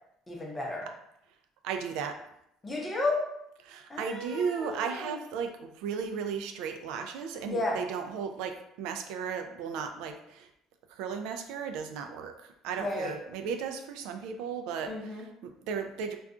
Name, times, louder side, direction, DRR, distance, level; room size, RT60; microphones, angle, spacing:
voice 1, 0.3-0.9 2.6-3.2 3.9-5.2 7.4-7.8 12.8-13.1 14.9-15.2, left 2 dB, 15° left, -3 dB, 0.7 m, -33 dB
voice 2, 1.6-2.2 3.6-10.5 10.9-16.2, right 6 dB, 80° right, 6 dB, 0.3 m, -35 dB
2.3 x 2.3 x 3.7 m, 0.77 s
cardioid pair, 165°, 0 cm